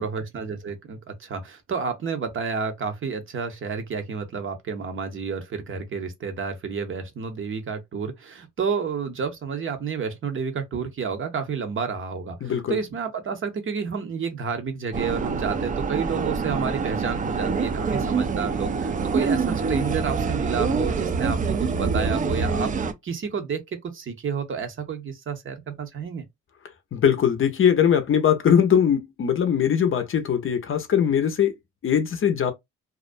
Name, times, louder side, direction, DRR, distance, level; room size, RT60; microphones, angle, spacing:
voice 1, 0.0-26.3, right 6 dB, 45° right, 0.7 m, -30 dB
voice 2, 12.4-12.8 26.9-31.5 31.8-32.5, left 8 dB, 45° left, 0.6 m, -21 dB
sound 1, 14.9-22.9, right 5 dB, 30° right, 0.3 m, -25 dB
2.4 x 2.1 x 2.4 m
cardioid pair, 90°, 30 cm